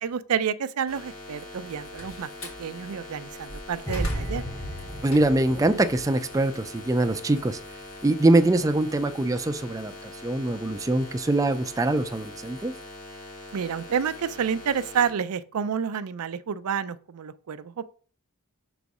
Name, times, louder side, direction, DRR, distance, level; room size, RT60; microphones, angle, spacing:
voice 1, 0.0-2.3 2.6-4.4 13.5-17.9, right 7 dB, 80° right, 0.4 m, -29 dB
sound 1, 0.9-15.1, left 2 dB, 80° left, 2.0 m, -43 dB
Slam, 1.7-2.7 3.2-5.6 6.0-8.4, equal, 65° left, 2.2 m, -38 dB
sound 2, 3.9-7.0 7.3-7.6, equal, 15° left, 0.7 m, -35 dB
voice 2, 5.0-7.6 8.0-9.9 10.2-12.7, right 2 dB, 15° right, 0.4 m, -23 dB
6.1 x 4.0 x 4.8 m
head